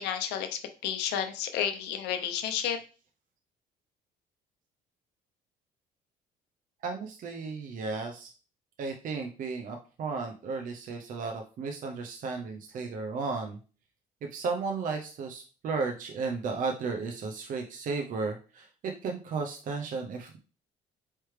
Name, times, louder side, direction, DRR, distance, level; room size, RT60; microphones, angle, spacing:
voice 1, 0.0-2.8, left 9 dB, 90° left, 7 dB, 0.7 m, -31 dB
voice 2, 6.8-8.3 8.8-13.6 14.3-20.4, right 4 dB, 50° right, 3 dB, 0.7 m, -34 dB
4.4 x 3.3 x 3.2 m, 0.36 s
cardioid pair, 110°, 17 cm